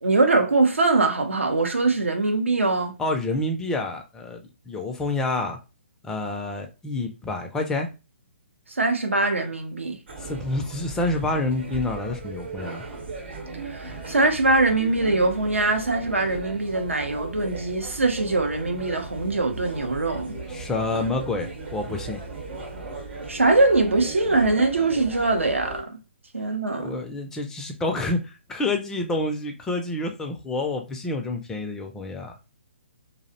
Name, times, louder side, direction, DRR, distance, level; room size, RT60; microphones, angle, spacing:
voice 1, 0.0-3.0 8.7-10.0 13.6-20.3 23.3-26.0 26.3-27.0, right 3 dB, 85° right, 0.6 m, -22 dB
voice 2, 3.0-5.6 6.0-7.9 10.2-12.8 20.5-22.2 26.8-32.3, left 2 dB, 10° left, 0.3 m, -28 dB
sound 1, 10.1-25.8, right 3 dB, 60° right, 0.8 m, -37 dB
2.5 x 2.0 x 2.6 m
figure-of-eight pair, 130°, 7 cm